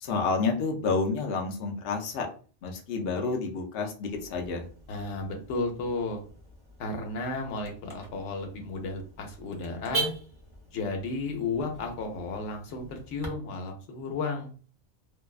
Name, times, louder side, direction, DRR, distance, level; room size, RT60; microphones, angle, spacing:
voice 1, 0.0-2.3 2.6-4.6, left 4 dB, 60° left, 2 dB, 0.7 m, -29 dB
Car / Alarm, 4.1-13.3, right 3 dB, 30° right, 0.5 m, -41 dB
voice 2, 4.9-6.2 6.8-10.1 10.7-14.5, left 3 dB, 90° left, 3 dB, 1.0 m, -33 dB
2.6 x 2.1 x 2.3 m, 0.40 s
omnidirectional pair, 1.2 m